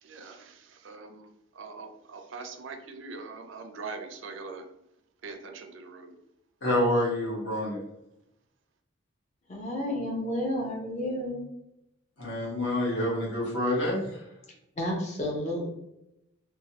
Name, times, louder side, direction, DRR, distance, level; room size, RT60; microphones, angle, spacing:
voice 1, 0.0-4.7 5.2-6.2, right 4 dB, 65° right, 6 dB, 0.4 m, -42 dB
voice 2, 6.6-7.8 12.2-14.2, left 1 dB, 60° left, -5 dB, 1.2 m, -27 dB
voice 3, 9.5-11.4 14.8-15.7, left 1 dB, 35° left, 0 dB, 0.6 m, -31 dB
3.1 x 2.2 x 2.8 m, 0.82 s
head